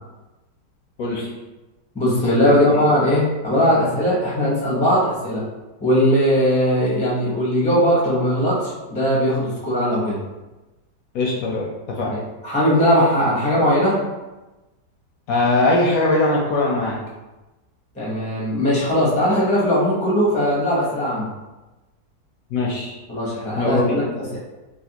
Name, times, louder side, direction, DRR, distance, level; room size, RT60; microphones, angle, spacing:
voice 1, 1.9-5.4 5.8-10.2 12.1-14.0 17.9-21.3 23.1-24.4, equal, 10° left, -6 dB, 0.4 m, -19 dB
voice 2, 11.1-12.1 15.3-17.0 22.5-22.9 23.5-24.0, left 2 dB, 70° left, -3 dB, 0.8 m, -21 dB
3.2 x 2.5 x 2.8 m, 1.1 s
omnidirectional pair, 1.8 m